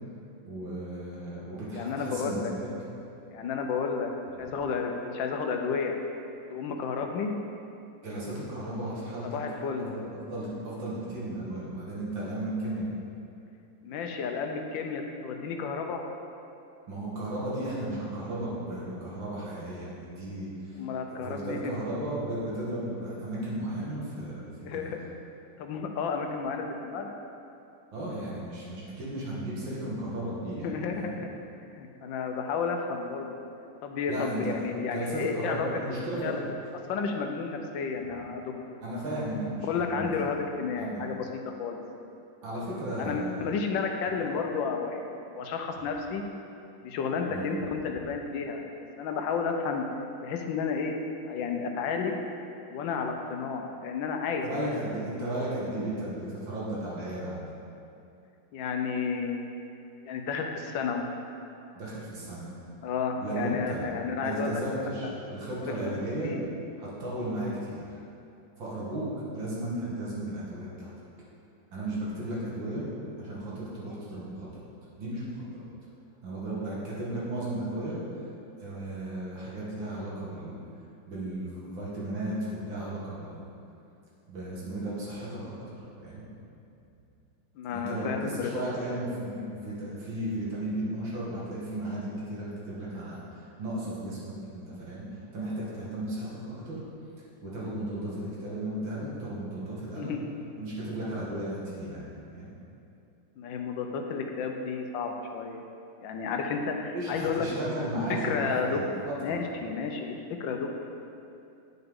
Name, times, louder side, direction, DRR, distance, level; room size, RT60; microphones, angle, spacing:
voice 1, 0.4-2.7 8.0-12.9 16.9-20.8 21.1-25.0 27.9-31.1 34.1-34.6 34.8-36.4 38.8-40.1 40.8-41.0 42.4-43.5 44.2-44.3 47.3-47.7 54.4-57.6 61.7-62.5 63.2-63.9 64.2-66.3 66.8-67.8 68.6-70.9 71.7-72.9 73.2-74.5 75.0-75.7 76.2-78.0 78.6-80.6 81.1-83.5 84.3-86.3 87.7-95.0 95.3-96.8 97.4-100.1 100.6-102.5 106.9-109.4, right 1 dB, 85° right, -7 dB, 2.5 m, -35 dB
voice 2, 1.7-2.5 3.3-4.1 4.4-5.9 6.5-7.3 9.2-9.9 13.8-16.0 20.8-21.8 24.6-25.0 25.6-27.1 30.6-31.3 31.8-33.4 33.8-35.7 36.2-36.4 36.9-38.8 39.7-41.8 43.1-45.0 45.4-46.2 46.8-48.6 49.0-49.8 50.2-50.9 51.2-52.2 52.7-54.5 58.5-59.7 60.0-61.1 62.8-64.6 65.7-65.8 66.2-66.5 87.6-88.5 99.9-100.2 103.4-105.6 106.0-107.4 108.2-108.8 109.2-110.7, left 5 dB, 80° left, 3 dB, 1.4 m, -32 dB
9.0 x 5.8 x 3.7 m, 2.7 s
omnidirectional pair, 2.0 m